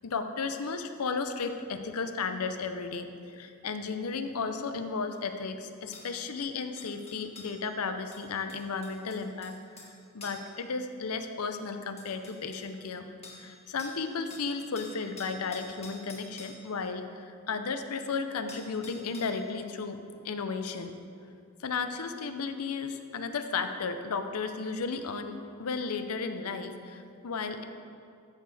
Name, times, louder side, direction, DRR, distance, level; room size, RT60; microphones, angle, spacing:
voice 1, 0.0-9.9 10.1-13.1 13.4-21.0 21.6-27.6, left 4 dB, 75° left, 8 dB, 0.6 m, -34 dB
sound 1, 5.1-5.2 5.9-6.1 6.8-7.6 8.1-9.9 10.2-10.5 11.5-11.6 12.0-12.7 13.2-13.5 13.8-14.0 14.3-16.6 18.1-18.2 18.5-19.4 20.7-20.8, left 3 dB, 30° left, 1.5 m, -48 dB
14.0 x 6.4 x 3.4 m, 2.4 s
head